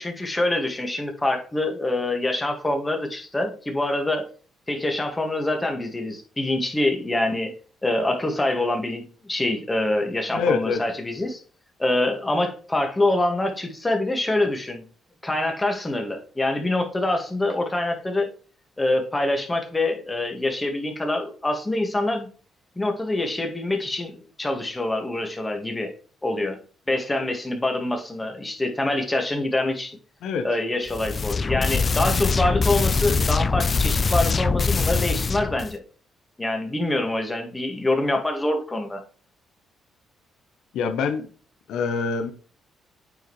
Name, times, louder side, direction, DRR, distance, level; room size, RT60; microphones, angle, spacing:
voice 1, 0.0-4.3 4.7-7.5 7.8-11.4 11.8-14.8 15.2-18.3 18.8-22.3 22.8-25.9 26.2-26.6 26.9-30.0 30.4-35.8 36.4-39.0, left 2 dB, 15° left, 4 dB, 1.9 m, -25 dB
voice 2, 10.3-10.8 30.2-30.4 40.7-41.3 41.7-42.3, left 5 dB, 80° left, 6 dB, 0.9 m, -25 dB
sound 1, 30.9-35.7, left 4 dB, 35° left, 0.4 m, -23 dB
9.0 x 5.0 x 3.2 m, 0.39 s
cardioid pair, 90°, 0 cm